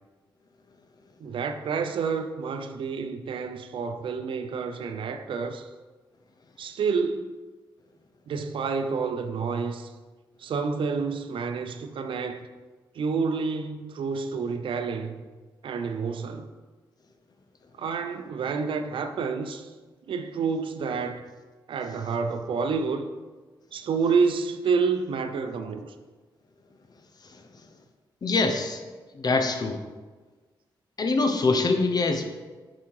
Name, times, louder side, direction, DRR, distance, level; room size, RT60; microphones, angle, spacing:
voice 1, 1.2-5.7 6.6-7.3 8.3-9.9 10.4-12.5 12.9-15.2 15.6-16.5 17.8-19.7 20.1-21.2 21.7-23.1 23.7-25.9, right 5 dB, 75° right, 0.6 m, -29 dB
voice 2, 28.2-28.8 29.1-29.8 31.0-32.2, left 3 dB, 50° left, 0.9 m, -24 dB
7.2 x 5.0 x 4.7 m
cardioid pair, 85°, 9 cm